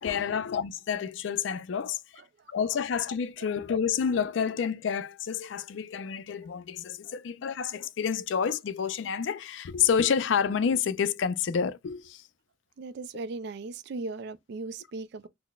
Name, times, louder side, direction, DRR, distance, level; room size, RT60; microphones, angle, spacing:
voice 1, 0.0-2.0 2.5-12.3, left 7 dB, 65° left, 0.4 m, -29 dB
voice 2, 12.8-15.3, right 3 dB, 55° right, 0.3 m, -38 dB
5.7 x 2.0 x 2.2 m
head